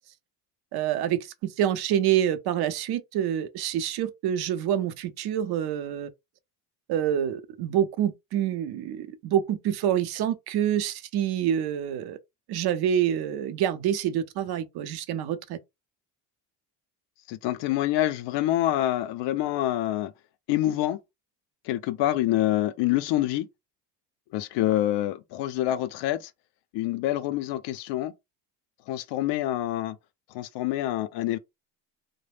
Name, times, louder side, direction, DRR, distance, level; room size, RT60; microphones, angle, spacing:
voice 1, 0.7-6.1 6.9-12.2 12.5-15.6, right 10 dB, 55° right, 0.6 m, -27 dB
voice 2, 17.3-20.1 20.5-21.0 21.7-23.5 24.3-26.3 26.7-28.1 28.9-30.0 30.3-31.4, left 14 dB, 65° left, 0.5 m, -26 dB
2.3 x 2.1 x 3.3 m
supercardioid pair, 105°, 45 cm